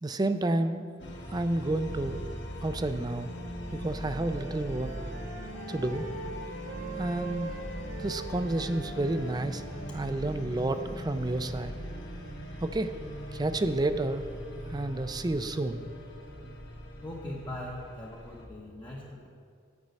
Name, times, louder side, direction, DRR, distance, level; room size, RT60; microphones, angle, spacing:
voice 1, 0.0-0.9 1.3-2.3 2.6-3.3 3.7-5.0 5.7-6.1 7.0-7.6 8.0-9.6 9.9-11.7 12.6-14.2 14.6-15.8, right 2 dB, 20° right, 10 dB, 0.5 m, -30 dB
sound 1, 1.0-18.5, equal, 75° left, 1.8 m, -40 dB
Wind instrument woodwind instrument, 3.9-10.3, right 2 dB, 80° right, 3.0 m, -43 dB
voice 2, 17.0-19.3, left 1 dB, 25° left, -5 dB, 1.0 m, -40 dB
9.5 x 5.5 x 8.1 m, 2.2 s
head